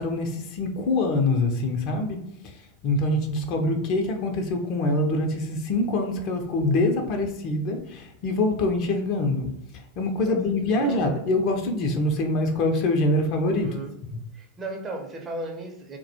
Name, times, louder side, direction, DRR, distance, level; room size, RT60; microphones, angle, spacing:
voice 1, 0.0-2.2 2.8-9.6 10.0-13.8 14.1-14.2, left 2 dB, 50° left, 4 dB, 0.5 m, -24 dB
voice 2, 10.2-11.1 13.6-13.9 14.3-16.0, right 2 dB, 30° right, 3 dB, 0.6 m, -36 dB
2.2 x 2.2 x 2.7 m, 0.80 s
hypercardioid pair, 90°, 0 cm